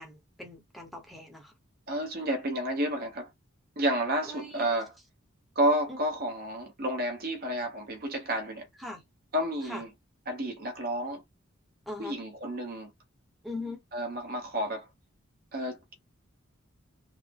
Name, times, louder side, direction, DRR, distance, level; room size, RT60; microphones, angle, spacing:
voice 1, 0.0-1.5 4.2-4.7 5.9-6.0 8.8-9.0 9.7-9.8 11.9-12.2 13.4-13.8, left 2 dB, ahead, 0.9 m, -40 dB
voice 2, 1.9-3.3 3.8-4.9 5.5-8.7 9.3-9.9 10.3-11.2 12.0-12.9 13.9-14.9 15.5-16.0, right 1 dB, 45° right, 0.9 m, -30 dB
3.6 x 2.1 x 3.4 m
head